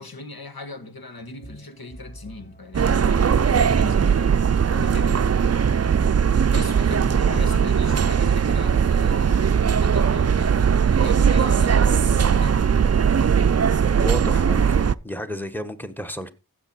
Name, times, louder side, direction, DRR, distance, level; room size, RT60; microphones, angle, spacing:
voice 1, 0.0-4.4 4.7-5.3 6.5-12.7, left 3 dB, 75° left, 1.7 m, -38 dB
sound 1, 1.2-8.0, equal, 25° left, 1.4 m, -46 dB
sound 2, 2.7-14.9, right 7 dB, 45° right, 0.5 m, -19 dB
voice 2, 14.0-14.8 15.0-16.3, equal, 5° left, 1.3 m, -32 dB
15.0 x 7.0 x 4.3 m
wide cardioid pair, 55°, 36 cm